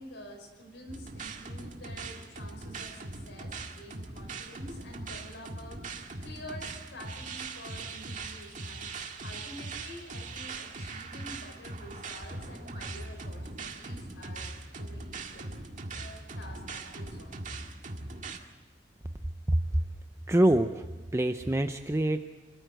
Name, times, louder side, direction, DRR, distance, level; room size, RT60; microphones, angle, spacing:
voice 1, 0.0-15.5 15.9-17.4, left 1 dB, 80° left, 3 dB, 5.7 m, -48 dB
sound 1, 0.9-18.4, right 3 dB, 45° right, 1.9 m, -41 dB
voice 2, 20.3-20.9 21.1-22.2, right 1 dB, 15° right, 7 dB, 0.6 m, -25 dB
26.0 x 14.0 x 7.9 m, 1.4 s
head